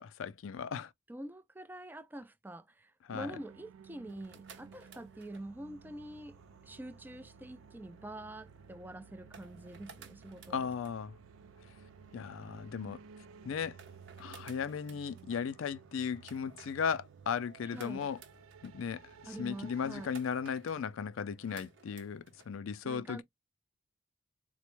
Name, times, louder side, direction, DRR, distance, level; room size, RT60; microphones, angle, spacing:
voice 1, 0.0-0.9 3.1-3.3 10.5-11.1 12.1-13.0 13.4-13.8 14.2-18.2 18.6-19.0 19.4-23.2, left 6 dB, 80° left, 0.4 m, -36 dB
voice 2, 1.1-6.4 6.6-10.7 17.6-18.1 19.3-20.2 22.8-23.2, right 1 dB, 10° right, 0.3 m, -46 dB
sound 1, 3.1-20.1, right 7 dB, 85° right, 0.3 m, -56 dB
sound 2, 4.0-22.5, right 4 dB, 65° right, 0.8 m, -58 dB
4.1 x 2.1 x 3.0 m
head